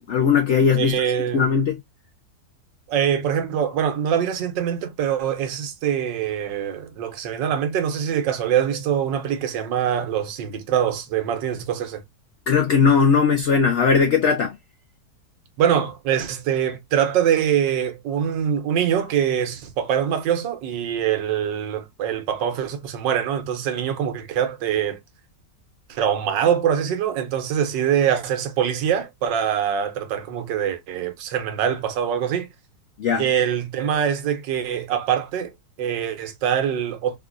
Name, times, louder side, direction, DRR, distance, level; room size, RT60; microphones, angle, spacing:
voice 1, 0.1-1.0 1.3-1.8 12.5-14.5 33.0-33.2, left 6 dB, 75° left, 0.6 m, -18 dB
voice 2, 0.8-1.5 2.9-12.0 15.6-25.0 25.9-32.5 33.2-35.5 35.8-37.2, right 9 dB, 90° right, 1.4 m, -23 dB
3.7 x 2.5 x 2.4 m
omnidirectional pair, 1.9 m